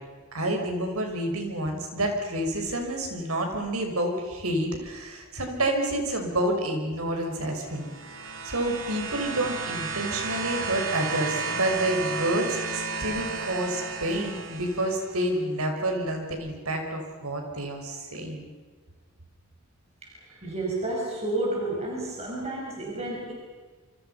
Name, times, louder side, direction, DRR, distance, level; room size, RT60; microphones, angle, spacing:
voice 1, 0.3-7.9 8.4-18.5 20.3-20.4, right 1 dB, 80° right, 3 dB, 5.7 m, -29 dB
sound 1, 7.5-15.3 16.3-16.4, right 4 dB, 60° right, 3.2 m, -33 dB
voice 2, 20.0-23.3, right 2 dB, 30° right, -3 dB, 6.2 m, -31 dB
28.0 x 25.5 x 5.7 m, 1.4 s
head